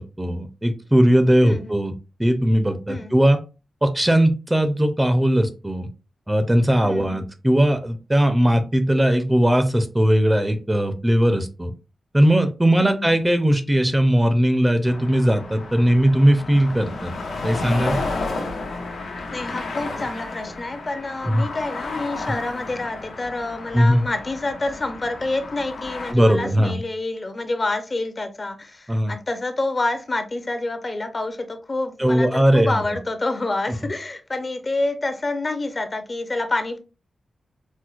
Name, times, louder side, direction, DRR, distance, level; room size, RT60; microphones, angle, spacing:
voice 1, 0.0-1.9 2.2-3.4 3.8-5.9 6.3-11.7 12.1-17.1 17.4-18.0 21.3-21.4 23.7-24.0 26.1-26.8 28.9-29.1 32.0-32.8, equal, 15° right, 0.5 m, -19 dB
voice 2, 1.4-1.8 2.9-3.2 6.8-7.3 12.8-13.2 19.3-36.8, left 2 dB, 35° left, 0.5 m, -28 dB
sound 1, 14.9-26.1, left 3 dB, 85° left, 0.7 m, -32 dB
4.4 x 2.0 x 2.4 m
wide cardioid pair, 95°, 0 cm